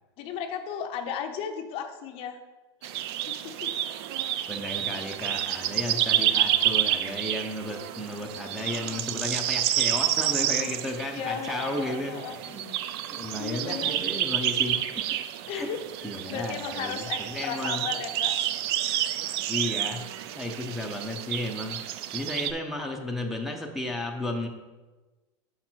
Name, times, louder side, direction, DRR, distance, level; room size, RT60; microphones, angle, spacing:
voice 1, 0.2-2.4 3.3-3.7 5.9-6.3 11.1-12.4 13.3-14.0 15.5-15.8 16.3-18.3, left 7 dB, 40° left, 6 dB, 0.6 m, -35 dB
sound 1, 2.8-22.5, right 12 dB, 60° right, 0.4 m, -29 dB
voice 2, 4.5-12.7 13.1-15.0 15.4-15.7 16.0-17.9 19.5-21.8 22.1-24.5, left 1 dB, ahead, -1 dB, 0.6 m, -34 dB
5.9 x 5.8 x 4.4 m, 1.2 s
supercardioid pair, 145°, 15 cm